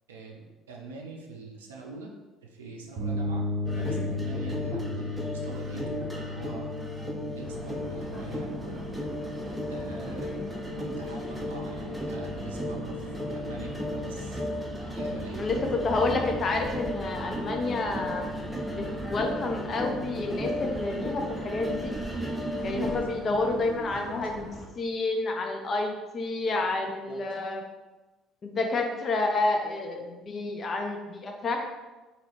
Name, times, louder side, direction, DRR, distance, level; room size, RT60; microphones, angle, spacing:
voice 1, 0.1-2.1 2.4-6.7 7.3-8.9 9.7-10.3 10.7-14.4 14.9-15.7 22.6-23.1 23.3-24.2 27.1-27.2, right 3 dB, 80° right, -1 dB, 0.4 m, -44 dB
sound 1, 3.0-10.7, left 2 dB, 60° right, 0.7 m, -35 dB
sound 2, 3.6-23.1, equal, 5° right, 0.7 m, -35 dB
voice 2, 3.7-4.2 10.2-10.5 15.4-18.2 18.8-21.9 22.6-27.6 28.4-31.7, left 3 dB, 40° left, 3 dB, 0.5 m, -29 dB
sound 3, 7.4-24.7, equal, 20° left, 1.1 m, -43 dB
4.0 x 2.7 x 2.9 m, 1.1 s
figure-of-eight pair, 55°, 0 cm